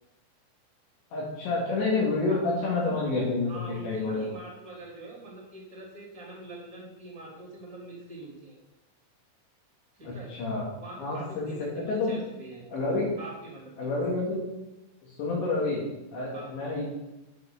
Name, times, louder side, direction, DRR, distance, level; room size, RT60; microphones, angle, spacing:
voice 1, 1.1-3.5 3.8-4.3 10.0-10.7 11.0-12.1 12.7-13.1 13.8-14.4 15.2-15.8 16.1-16.8, left 3 dB, 70° left, -5 dB, 4.3 m, -28 dB
voice 2, 2.1-2.5 2.8-3.0 3.5-8.6 9.9-10.3 10.8-12.7 13.2-14.0 16.3-16.5, right 2 dB, 20° right, -3 dB, 3.0 m, -44 dB
7.9 x 7.5 x 7.2 m, 0.96 s
omnidirectional pair, 5.4 m